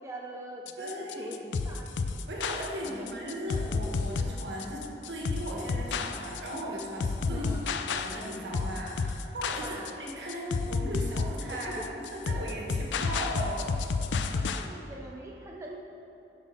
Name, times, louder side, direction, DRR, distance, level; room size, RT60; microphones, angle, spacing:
voice 1, 0.0-1.9 2.8-3.1 7.3-7.7 9.6-10.0 11.5-12.0 14.3-15.8, right 1 dB, 15° right, -1 dB, 0.4 m, -42 dB
sound 1, 0.7-14.7, left 4 dB, 85° left, 0.4 m, -31 dB
voice 2, 0.8-1.4 2.3-7.5 7.8-13.8, equal, 80° right, -2 dB, 1.4 m, -37 dB
7.8 x 4.2 x 5.9 m, 2.9 s
head